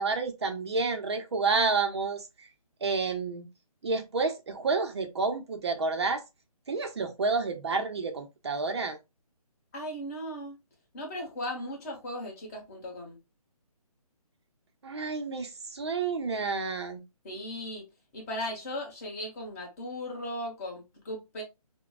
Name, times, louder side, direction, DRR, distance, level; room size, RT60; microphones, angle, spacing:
voice 1, 0.0-2.5 2.8-3.5 3.8-6.2 6.7-9.0 14.8-17.0, right 4 dB, 45° right, 0.6 m, -29 dB
voice 2, 9.7-10.6 10.9-13.2 17.2-17.8 18.1-21.4, left 1 dB, 25° left, 1.3 m, -37 dB
5.8 x 2.2 x 2.3 m
figure-of-eight pair, 155°, 20 cm